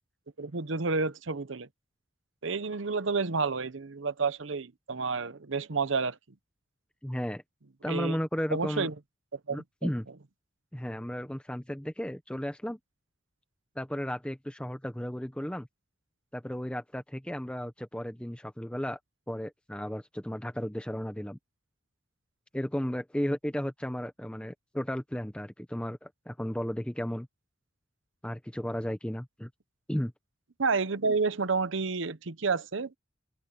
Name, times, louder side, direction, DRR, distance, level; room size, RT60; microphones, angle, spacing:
voice 1, 0.4-1.7 2.4-6.2 7.9-8.2 8.5-8.9 9.5-9.6 30.6-33.0, right 4 dB, 70° right, 0.9 m, -30 dB
voice 2, 7.0-7.4 7.8-8.9 9.5-10.1 10.7-12.8 13.8-15.7 16.3-19.0 19.3-21.4 22.5-27.3 28.2-29.5 29.9-30.1, equal, 5° left, 1.0 m, -34 dB
open air
head